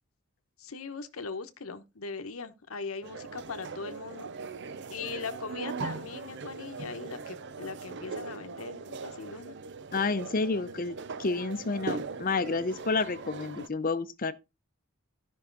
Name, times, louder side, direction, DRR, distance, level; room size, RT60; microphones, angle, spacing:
voice 1, 0.6-4.3 4.9-9.6, left 4 dB, 85° left, 1.0 m, -40 dB
sound 1, 3.0-13.7, right 4 dB, 60° right, 0.6 m, -40 dB
voice 2, 9.9-14.3, left 3 dB, 40° left, 0.7 m, -30 dB
13.0 x 5.6 x 3.9 m
head